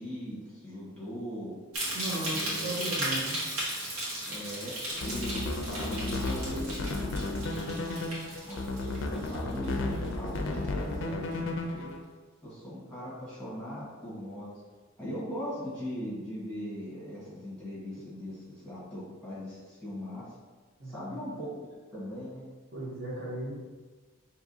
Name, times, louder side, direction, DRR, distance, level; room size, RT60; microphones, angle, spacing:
voice 1, 0.0-1.6 2.3-2.7 4.2-7.9 8.5-11.9 12.4-14.5 15.0-20.2 20.9-22.4, equal, 5° left, -10 dB, 1.3 m, -39 dB
sound 1, 1.7-10.1 10.3-10.8 11.3-11.4, right 1 dB, 90° right, 1.2 m, -36 dB
voice 2, 1.9-3.4 20.8-21.2 22.7-23.5, right 1 dB, 45° right, -8 dB, 1.0 m, -36 dB
sound 2, 4.9-12.0, left 2 dB, 60° left, 0.4 m, -33 dB
4.7 x 2.8 x 2.7 m, 1.3 s
head